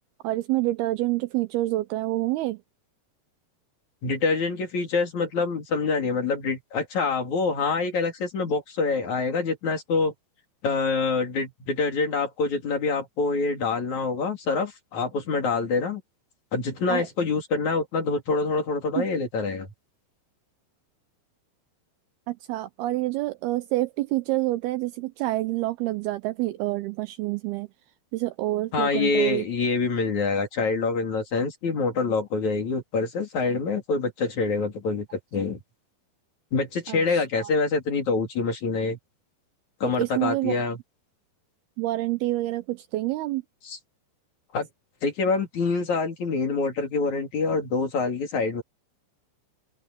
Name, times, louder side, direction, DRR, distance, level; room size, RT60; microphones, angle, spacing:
voice 1, 0.2-2.6 16.9-17.1 19.0-19.1 22.3-27.7 28.1-29.4 36.9-37.5 39.8-40.5 41.8-43.4, right 17 dB, 90° right, 2.3 m, -27 dB
voice 2, 4.0-10.1 10.6-16.0 16.5-19.7 28.7-35.1 35.3-35.6 36.5-39.0 39.8-40.8 43.6-43.8 44.5-44.7 45.0-48.6, left 4 dB, 45° left, 3.9 m, -26 dB
open air
omnidirectional pair, 5.1 m